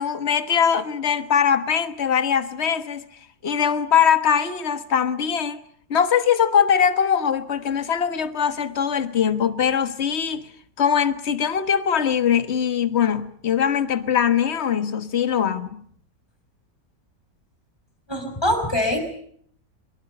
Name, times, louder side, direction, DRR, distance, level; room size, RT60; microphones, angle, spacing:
voice 1, 0.0-3.1 3.4-5.6 5.9-10.5 10.8-15.8, left 8 dB, 40° left, 1.6 m, -21 dB
voice 2, 18.1-19.0, left 1 dB, 15° left, 5.2 m, -23 dB
23.5 x 22.5 x 6.6 m
omnidirectional pair, 1.9 m